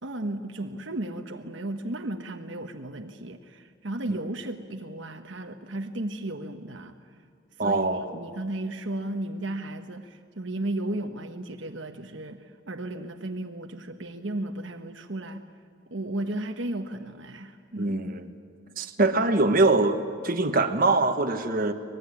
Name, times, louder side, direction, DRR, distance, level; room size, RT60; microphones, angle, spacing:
voice 1, 0.0-6.9 7.6-7.9 8.1-15.5 15.9-18.1, right 1 dB, 65° right, 5 dB, 1.2 m, -34 dB
voice 2, 7.6-8.1 17.8-18.3 18.8-21.7, right 2 dB, 45° right, 6 dB, 1.4 m, -23 dB
24.0 x 20.0 x 9.8 m, 2.2 s
head